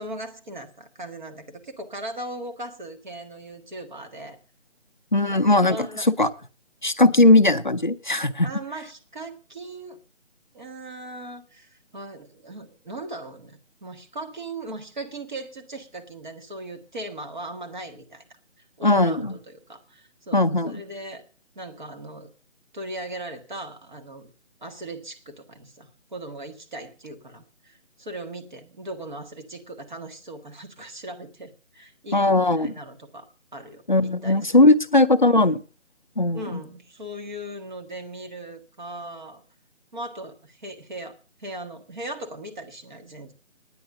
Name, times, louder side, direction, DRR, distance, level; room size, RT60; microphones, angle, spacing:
voice 1, 0.0-4.4 5.3-6.1 8.4-10.0 10.5-18.2 18.8-21.2 21.5-22.3 22.7-24.3 24.6-33.3 33.5-34.7 36.3-39.4 39.9-43.3, right 1 dB, 35° right, 5 dB, 1.7 m, -38 dB
voice 2, 5.1-6.3 6.8-8.5 18.8-19.3 20.3-20.8 32.1-32.7 33.9-35.6 36.2-36.6, left 2 dB, 40° left, 9 dB, 0.5 m, -19 dB
9.9 x 9.3 x 6.6 m, 0.37 s
figure-of-eight pair, 165°, 38 cm